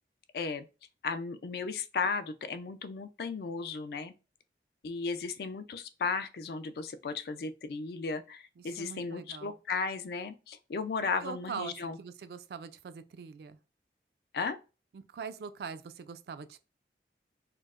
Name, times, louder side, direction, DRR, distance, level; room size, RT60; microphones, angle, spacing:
voice 1, 0.3-0.7 1.0-4.1 4.8-12.0 14.3-14.6, left 4 dB, 60° left, 0.3 m, -35 dB
voice 2, 8.6-9.6 11.2-13.6 14.9-16.6, right 6 dB, 65° right, 0.3 m, -42 dB
4.4 x 2.0 x 2.4 m
head